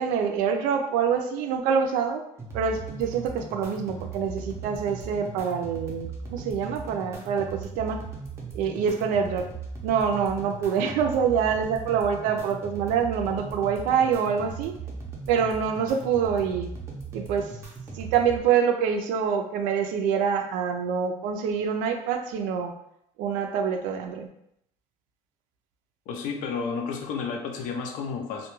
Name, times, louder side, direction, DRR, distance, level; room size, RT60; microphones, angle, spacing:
voice 1, 0.0-2.2 2.5-8.0 8.5-9.5 9.8-14.7 15.3-16.7 17.1-17.5 17.9-22.7 23.2-24.3, right 7 dB, 75° right, 5 dB, 0.4 m, -26 dB
sound 1, 2.4-18.4, right 5 dB, 20° right, 0.5 m, -38 dB
voice 2, 26.1-28.5, left 5 dB, 70° left, 3 dB, 0.5 m, -31 dB
2.2 x 2.2 x 3.0 m, 0.76 s
cardioid pair, 150°, 14 cm